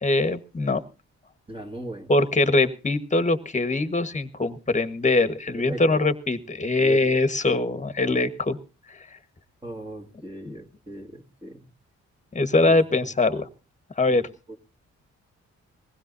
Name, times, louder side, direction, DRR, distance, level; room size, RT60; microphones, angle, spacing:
voice 1, 0.0-0.8 2.1-8.6 10.5-10.6 12.3-13.5 14.0-14.2, left 2 dB, 25° left, 11 dB, 1.4 m, -22 dB
voice 2, 1.5-2.1 5.6-6.0 6.8-7.0 9.6-11.7 12.7-12.8 14.1-14.2, right 1 dB, 20° right, 3 dB, 2.1 m, -38 dB
20.5 x 16.0 x 2.7 m, 0.33 s
cardioid pair, 70°, 29 cm